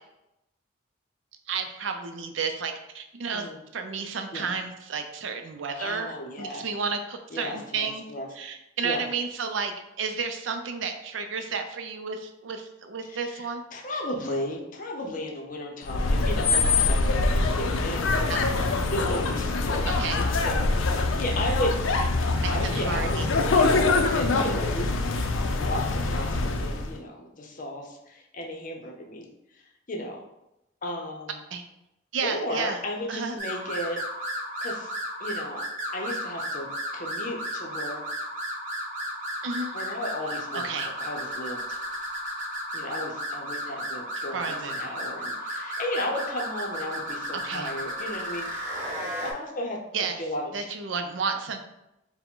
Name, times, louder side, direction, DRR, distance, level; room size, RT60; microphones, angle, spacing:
voice 1, 1.5-3.5 3.7-8.0 8.3-13.6 18.3-18.4 19.9-20.2 22.4-23.3 31.5-31.6 32.1-32.8 33.1-33.4 39.4-39.8 40.5-40.9 44.3-45.0 47.3-47.7 49.9-50.2 50.5-51.7, right 5 dB, 75° right, 6 dB, 0.4 m, -32 dB
voice 2, 5.7-6.7 7.3-8.3 8.8-9.1 13.0-18.5 18.9-21.7 22.4-25.0 25.3-29.3 29.9-30.2 30.8-31.4 32.2-34.0 34.6-34.9 35.2-35.7 35.9-36.7 36.9-38.0 39.7-40.6 41.0-41.8 42.7-48.8 49.2-50.5, left 1 dB, 45° left, 0 dB, 0.6 m, -34 dB
sound 1, 15.8-26.9, left 3 dB, 85° left, 0.4 m, -24 dB
sound 2, 33.4-49.3, equal, 40° right, 1.0 m, -34 dB
4.6 x 2.1 x 3.7 m, 0.88 s
head